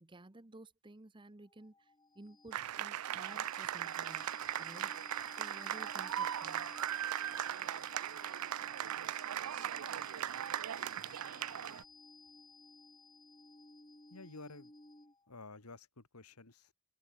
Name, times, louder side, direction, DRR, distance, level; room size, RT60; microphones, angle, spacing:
voice 1, 0.0-5.1 5.4-6.7, right 2 dB, 20° right, 0.9 m, -55 dB
sound 1, 1.4-15.3, left 3 dB, 20° left, 4.5 m, -57 dB
sound 2, 2.5-11.8, right 10 dB, 80° right, 0.5 m, -38 dB
voice 2, 14.1-14.7 15.3-16.7, left 3 dB, 90° left, 2.2 m, -52 dB
head